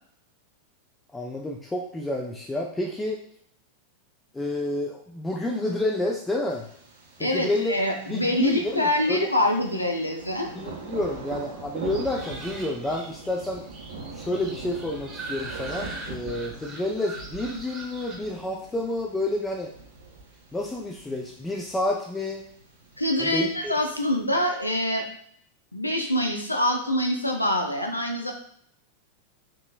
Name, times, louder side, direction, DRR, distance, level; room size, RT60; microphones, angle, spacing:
voice 1, 1.1-3.2 4.3-6.7 7.2-7.7 8.1-9.3 10.5-13.6 14.1-19.7 20.5-22.4 23.2-23.7, left 1 dB, 10° left, -1 dB, 0.4 m, -29 dB
Thunder, 6.5-24.5, right 4 dB, 65° right, 0.7 m, -42 dB
voice 2, 7.2-10.5 23.0-25.1 25.7-28.3, left 1 dB, 85° left, 2 dB, 0.6 m, -25 dB
Chikens birds and a broken rooster Kauai, 11.9-18.2, right 3 dB, 25° right, 0.9 m, -41 dB
3.6 x 2.9 x 2.4 m, 0.66 s
figure-of-eight pair, 90°, 0 cm